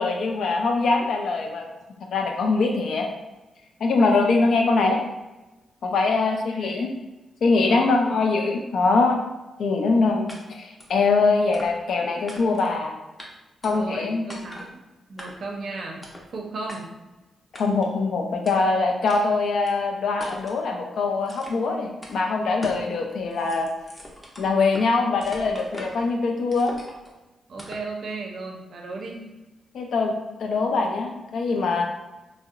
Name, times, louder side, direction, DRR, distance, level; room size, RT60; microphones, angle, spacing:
voice 1, 0.0-1.7 2.1-3.1 3.8-5.0 5.8-6.9 7.4-9.2 9.6-12.9 13.6-14.3 17.5-23.7 24.4-26.7 29.7-30.1 30.4-31.8, left 3 dB, 75° left, 2 dB, 0.4 m, -23 dB
voice 2, 6.2-6.9 7.7-8.3 9.8-10.3 13.6-14.6 15.1-16.9 27.5-29.3, right 3 dB, 65° right, 1 dB, 0.5 m, -36 dB
sound 1, 10.3-10.4 10.8-11.0 11.5-12.0 12.3-12.8 13.2-13.3 13.6-14.0 14.3-14.7 15.2-15.6 16.0-16.3 16.7-16.8 17.5-17.9 18.5-18.6 19.1-19.2 19.6-19.7 20.2-20.6 21.3-21.7 22.0-22.1 22.6-22.9 23.2-24.9 25.2-26.1 26.5-27.1 27.6-27.9, equal, 15° left, 0.5 m, -41 dB
2.7 x 2.0 x 2.4 m, 1.1 s
cardioid pair, 95°, 0 cm